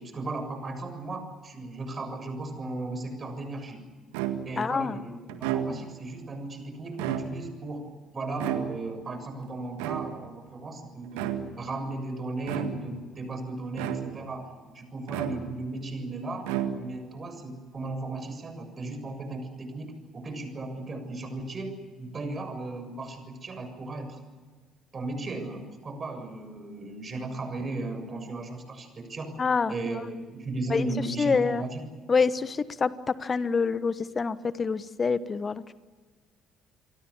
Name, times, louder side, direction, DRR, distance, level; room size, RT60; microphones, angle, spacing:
voice 1, 0.0-3.8 4.5-24.2 24.9-29.3 29.7-31.8, right 2 dB, 35° right, 7 dB, 7.2 m, -36 dB
sound 1, 4.1-4.7 5.3-6.0 6.9-7.6 8.4-9.1 9.8-10.4 11.1-11.7 12.4-13.0 13.8-14.4 15.1-15.8 16.4-17.1, right 10 dB, 70° right, 1.8 m, -33 dB
voice 2, 4.6-5.0 29.4-29.7 30.7-30.9 31.2-31.6 32.1-35.7, left 5 dB, 35° left, 16 dB, 1.2 m, -26 dB
28.5 x 23.5 x 7.2 m, 1.4 s
figure-of-eight pair, 50°, 0 cm